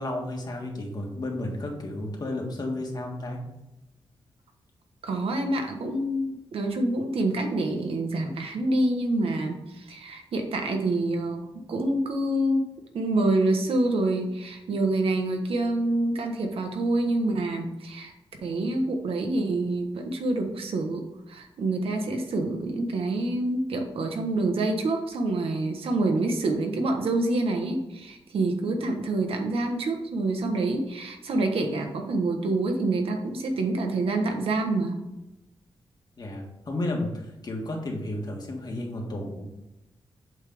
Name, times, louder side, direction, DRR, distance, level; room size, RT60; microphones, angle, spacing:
voice 1, 0.0-3.4 36.2-39.5, left 1 dB, 45° left, 1 dB, 1.6 m, -32 dB
voice 2, 5.0-6.3 6.5-12.7 12.9-18.1 18.4-35.0, right 2 dB, 80° right, 4 dB, 1.2 m, -27 dB
8.2 x 3.5 x 5.2 m, 0.94 s
wide cardioid pair, 115°, 9 cm